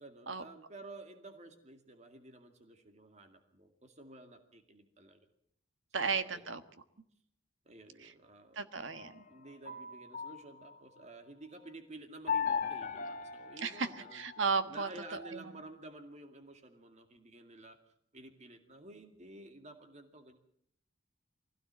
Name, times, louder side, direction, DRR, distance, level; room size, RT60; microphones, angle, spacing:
voice 1, 0.0-5.3 6.0-6.5 7.7-8.7 9.3-14.2 14.7-17.8 18.1-20.4, right 2 dB, 35° right, 6 dB, 2.2 m, -52 dB
voice 2, 5.9-6.6 8.0-8.1 8.5-9.2 13.6-14.9 15.2-15.4, right 5 dB, 75° right, 10 dB, 1.4 m, -34 dB
sound 1, 8.7-11.0 12.3-14.5, left 6 dB, 45° left, 1.6 m, -38 dB
23.5 x 16.5 x 7.5 m, 0.68 s
head